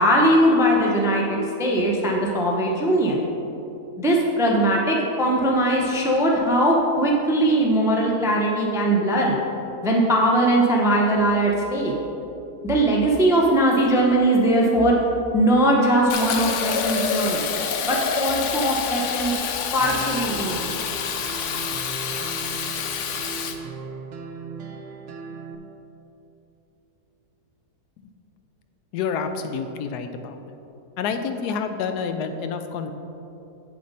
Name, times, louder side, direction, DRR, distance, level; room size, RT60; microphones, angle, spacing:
voice 1, 0.0-3.3 4.0-9.4 9.8-11.9 12.6-14.9 15.3-17.4 17.9-19.3 19.7-20.7, right 1 dB, 5° right, -1 dB, 0.5 m, -20 dB
Fill (with liquid), 16.1-23.5, left 6 dB, 65° left, 0.8 m, -27 dB
sound 1, 19.8-25.6, right 4 dB, 60° right, 0.8 m, -37 dB
voice 2, 28.9-30.6 31.0-32.9, left 6 dB, 80° left, 8 dB, 1.1 m, -28 dB
7.9 x 7.5 x 4.1 m, 2.9 s
omnidirectional pair, 1.7 m